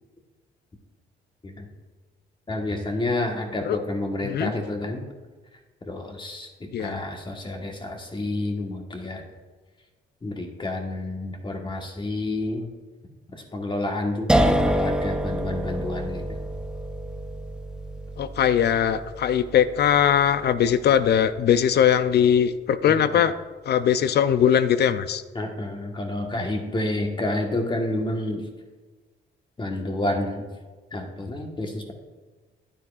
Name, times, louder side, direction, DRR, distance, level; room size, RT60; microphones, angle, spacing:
voice 1, 2.5-5.1 5.9-9.2 10.2-12.7 13.3-16.3 22.9-23.0 25.3-28.4 29.6-30.5 30.9-31.9, left 1 dB, 25° left, 2 dB, 1.4 m, -29 dB
voice 2, 6.7-7.0 18.2-23.3 23.7-25.2, left 9 dB, 55° left, 13 dB, 0.5 m, -20 dB
sound 1, 14.3-21.2, right 1 dB, 5° right, 0.5 m, -27 dB
9.8 x 9.2 x 2.5 m, 1.3 s
cardioid pair, 90°, 20 cm